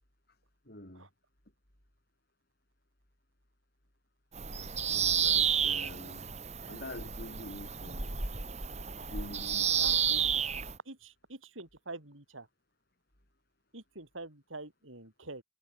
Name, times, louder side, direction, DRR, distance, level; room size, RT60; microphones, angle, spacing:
voice 1, 0.6-1.1 4.9-6.3 6.6-8.1 9.1-10.2, left 1 dB, 50° left, 6.2 m, -46 dB
Bird vocalization bird call bird song, 4.3-10.8, right 8 dB, 35° right, 2.7 m, -31 dB
voice 2, 9.8-10.3 10.8-12.5 13.7-15.4, right 2 dB, 85° right, 4.8 m, -46 dB
head